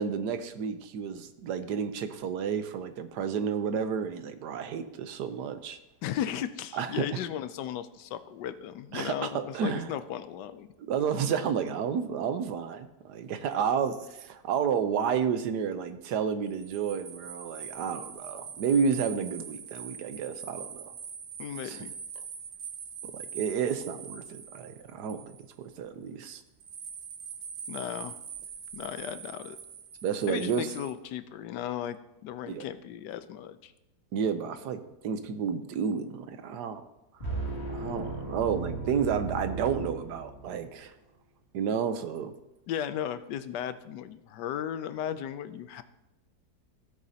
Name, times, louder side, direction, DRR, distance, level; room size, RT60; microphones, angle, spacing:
voice 1, 0.0-5.8 6.7-7.2 8.9-9.9 10.9-20.9 21.6-21.8 23.1-25.3 25.6-26.4 30.0-30.7 32.5-32.6 34.1-36.8 37.7-40.9 41.5-42.3, right 7 dB, 80° right, 10 dB, 1.3 m, -31 dB
voice 2, 6.0-10.7 21.4-21.9 27.7-28.2 28.7-29.6 30.3-33.7 42.7-45.8, left 10 dB, 85° left, 12 dB, 1.3 m, -36 dB
sound 1, 16.5-25.7 26.6-30.9, right 7 dB, 55° right, 0.7 m, -43 dB
sound 2, 37.2-40.7, right 2 dB, 40° left, 2.4 m, -36 dB
16.0 x 8.2 x 2.8 m, 0.93 s
omnidirectional pair, 1.8 m